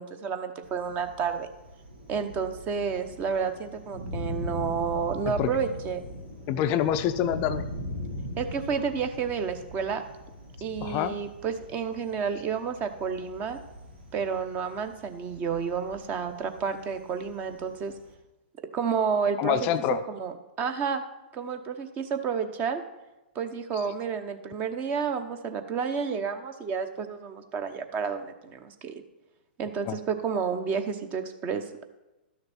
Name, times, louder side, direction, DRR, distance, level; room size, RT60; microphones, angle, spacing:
voice 1, 0.0-1.5 2.1-6.0 8.4-10.0 10.6-13.6 14.1-17.9 18.7-19.6 19.9-20.3 20.6-21.0 21.3-22.8 23.3-28.9 29.6-31.8, right 6 dB, 30° right, 8 dB, 0.9 m, -30 dB
Thunder, 0.6-18.1, left 1 dB, 90° right, 2.3 m, -41 dB
voice 2, 6.5-7.7 10.8-11.2 19.4-20.0 29.9-30.0, left 9 dB, 35° left, 10 dB, 0.4 m, -26 dB
12.0 x 6.5 x 4.3 m, 1.0 s
hypercardioid pair, 115°, 5 cm